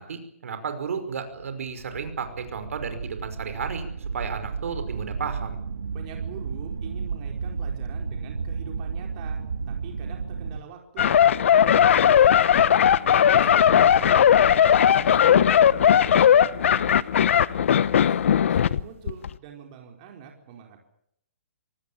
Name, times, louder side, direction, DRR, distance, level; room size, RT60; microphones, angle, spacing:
voice 1, 0.0-3.9 4.1-5.6 13.7-13.9, right 6 dB, 70° right, 8 dB, 5.4 m, -33 dB
sound 1, 1.4-10.6, right 5 dB, 90° right, 2.0 m, -33 dB
voice 2, 5.9-9.4 9.7-12.9 13.3-15.4 15.7-17.7 18.0-20.8, right 7 dB, 35° right, 2 dB, 4.6 m, -45 dB
sound 2, 11.0-18.8 19.1-19.3, left 9 dB, 60° left, 0.9 m, -18 dB
25.5 x 18.5 x 8.8 m, 0.74 s
hypercardioid pair, 160°, 8 cm